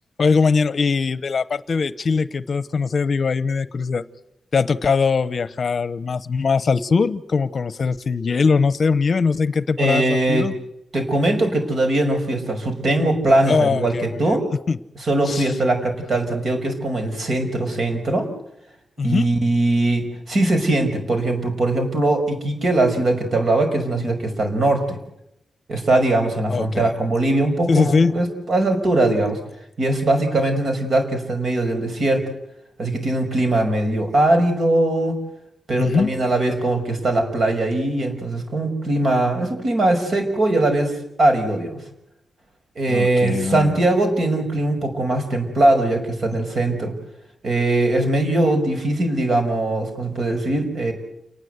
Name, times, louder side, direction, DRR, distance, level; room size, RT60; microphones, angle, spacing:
voice 1, 0.2-4.0 4.5-10.5 13.5-14.4 14.7-14.8 15.3-15.5 19.0-19.3 26.5-26.9 27.7-28.1 35.8-36.1 42.9-43.8, left 5 dB, 45° left, 15 dB, 0.9 m, -21 dB
voice 2, 9.8-10.5 10.9-14.4 15.0-18.3 19.0-25.0 25.7-29.4 29.8-32.2 32.8-35.2 35.7-41.8 42.8-46.9 47.4-50.9, right 2 dB, 50° right, 6 dB, 5.9 m, -21 dB
29.0 x 19.5 x 8.1 m, 0.82 s
wide cardioid pair, 155°, 0 cm